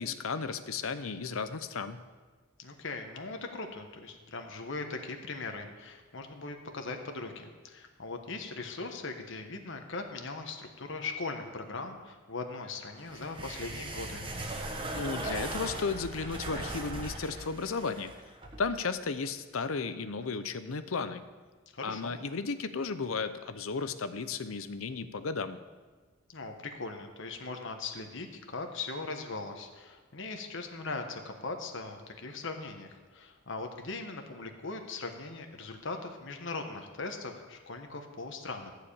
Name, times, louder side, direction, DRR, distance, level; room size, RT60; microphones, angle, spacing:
voice 1, 0.0-2.0 14.9-18.1 18.6-21.2 21.8-25.6, left 4 dB, 85° left, 11 dB, 0.7 m, -34 dB
voice 2, 2.6-14.2 21.7-22.2 26.3-38.7, left 3 dB, 65° left, 4 dB, 1.3 m, -40 dB
sound 1, 13.0-18.6, right 2 dB, 25° right, 1.2 m, -38 dB
14.0 x 5.0 x 8.6 m, 1.4 s
head